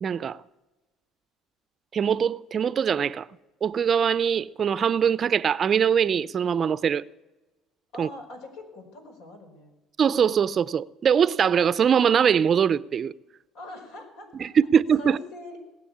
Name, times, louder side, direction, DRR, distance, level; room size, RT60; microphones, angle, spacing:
voice 1, 0.0-0.4 1.9-3.3 3.6-7.0 8.0-8.1 10.0-13.1 14.4-15.2, right 7 dB, 40° right, 0.5 m, -22 dB
voice 2, 7.9-9.7 13.5-14.5 15.0-15.6, left 1 dB, 80° left, 5.3 m, -42 dB
20.0 x 7.9 x 8.5 m
cardioid pair, 110°, 0 cm